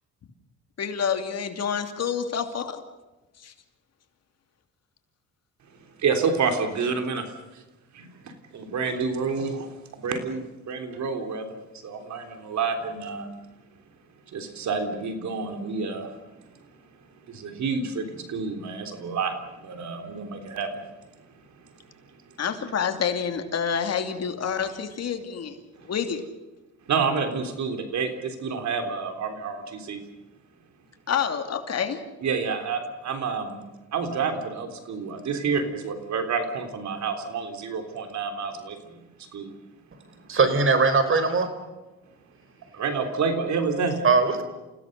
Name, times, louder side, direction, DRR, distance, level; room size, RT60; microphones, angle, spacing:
voice 1, 0.8-2.8 3.4-3.5 22.4-25.6 25.9-26.2 31.1-32.0, left 7 dB, 55° left, 6 dB, 2.8 m, -28 dB
voice 2, 6.0-7.3 7.5-7.6 7.9-9.7 10.0-11.5 11.8-13.3 14.3-16.1 17.3-20.9 25.8-25.9 26.9-30.0 32.2-33.6 33.9-39.0 39.3-39.5 42.7-44.0, right 5 dB, 65° right, 6 dB, 3.6 m, -29 dB
voice 3, 40.3-41.5 44.0-44.4, right 4 dB, 45° right, 10 dB, 4.1 m, -20 dB
28.5 x 16.5 x 6.7 m, 1.1 s
cardioid pair, 90°, 30 cm